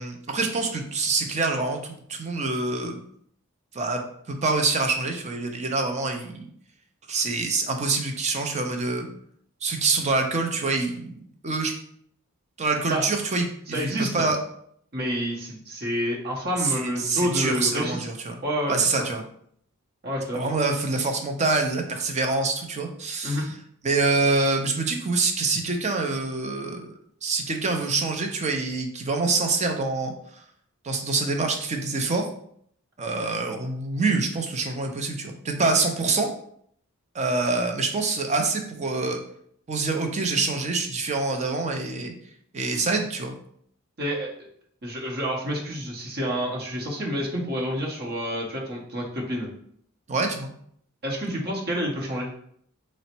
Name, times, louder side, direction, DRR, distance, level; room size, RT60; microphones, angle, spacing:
voice 1, 0.0-3.0 3.7-6.5 7.1-9.1 9.6-11.2 11.4-11.7 12.6-14.4 16.6-18.4 18.7-19.2 20.3-23.4 23.8-26.9 27.2-30.1 30.8-32.3 33.0-36.3 37.1-39.2 39.7-42.1 42.5-43.3 50.1-50.5, right 3 dB, 30° right, 4 dB, 0.5 m, -26 dB
voice 2, 13.7-14.3 14.9-18.1 18.4-19.1 20.0-20.5 23.2-23.5 44.0-44.3 44.8-49.5 51.0-52.3, equal, 50° right, -2 dB, 0.9 m, -28 dB
4.0 x 2.1 x 4.3 m, 0.66 s
head